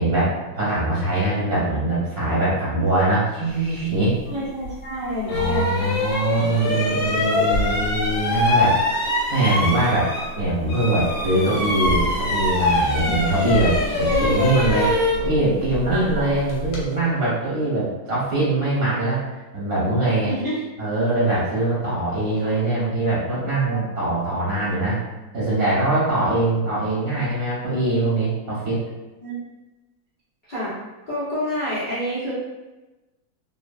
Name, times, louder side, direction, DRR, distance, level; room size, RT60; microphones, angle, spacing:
voice 1, 0.0-4.1 5.3-9.0 9.3-14.9 15.2-19.2 19.5-20.3 20.8-25.0 25.3-28.8, right 2 dB, 40° right, -9 dB, 0.8 m, -22 dB
voice 2, 4.3-5.9 13.1-13.2 14.0-14.7 15.8-16.3 20.3-20.6 22.4-22.5 23.5-23.8 29.2-29.4 30.5-30.8 31.1-32.3, equal, 90° left, -12 dB, 0.4 m, -28 dB
sound 1, 4.6-4.7 5.3-10.4 10.7-16.8, left 2 dB, 70° left, 1.3 m, -23 dB
3.2 x 2.0 x 2.3 m, 1.1 s
omnidirectional pair, 2.2 m